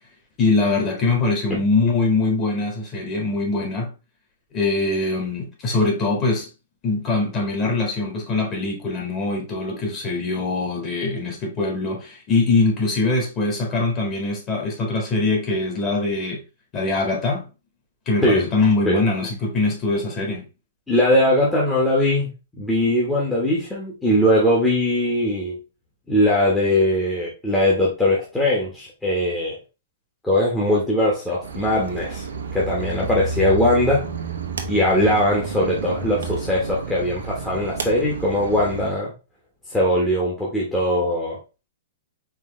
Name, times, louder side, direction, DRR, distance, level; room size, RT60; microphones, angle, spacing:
voice 1, 0.4-3.9 4.5-6.5 6.8-16.4 16.7-17.5 18.1-20.5, left 3 dB, 25° left, 1.8 m, -22 dB
voice 2, 20.9-22.3 22.6-25.6 26.1-29.6 30.2-32.3 32.5-34.1 34.7-39.1 39.7-41.4, left 1 dB, 5° left, 1.2 m, -20 dB
sound 1, 31.4-38.9, right 4 dB, 90° right, 1.0 m, -31 dB
4.7 x 3.3 x 3.1 m
hypercardioid pair, 145°, 0 cm